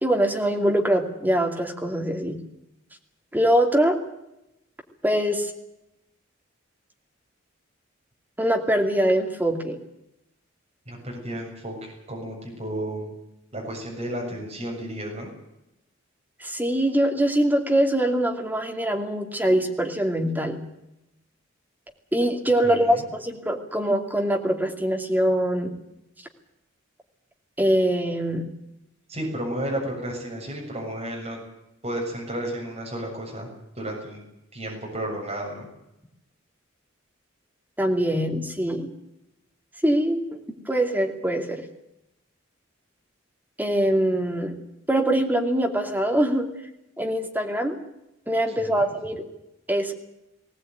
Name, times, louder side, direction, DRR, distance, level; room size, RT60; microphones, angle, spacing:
voice 1, 0.0-2.4 3.3-4.0 5.0-5.5 8.4-9.8 16.4-20.6 22.1-25.7 27.6-28.5 37.8-38.9 39.8-40.2 40.7-41.6 43.6-44.6 44.9-46.5 47.0-47.8 48.3-49.2 49.7-49.9, right 1 dB, 10° right, 2 dB, 2.6 m, -23 dB
voice 2, 10.9-13.1 13.5-15.3 22.6-23.1 29.1-31.4 31.8-33.5 33.8-34.2 34.5-35.7 48.5-48.9, right 1 dB, 35° right, -1 dB, 7.4 m, -32 dB
20.5 x 17.5 x 9.3 m, 0.87 s
head